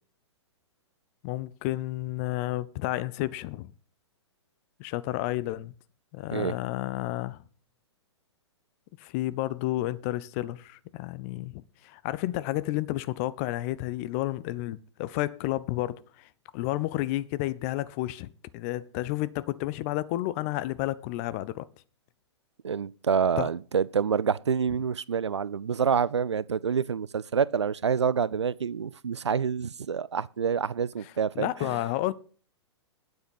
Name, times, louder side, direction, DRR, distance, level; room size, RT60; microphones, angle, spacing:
voice 1, 1.2-3.7 4.8-5.7 6.1-7.4 9.0-16.3 16.5-21.6 23.4-23.5 31.0-32.1, left 16 dB, 30° left, 0.6 m, -31 dB
voice 2, 22.6-31.8, right 6 dB, 70° right, 0.4 m, -27 dB
9.4 x 8.0 x 5.5 m
figure-of-eight pair, 110°, 15 cm